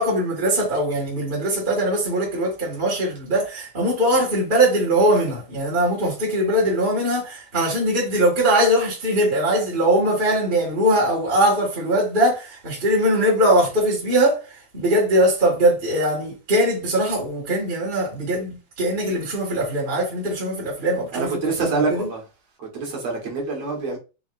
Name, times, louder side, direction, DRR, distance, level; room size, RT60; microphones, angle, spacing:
voice 1, 0.0-22.1, right 1 dB, 20° right, 1.5 m, -21 dB
voice 2, 21.1-22.2 22.6-24.0, right 4 dB, 55° right, 2.5 m, -25 dB
5.7 x 3.4 x 2.6 m
omnidirectional pair, 3.7 m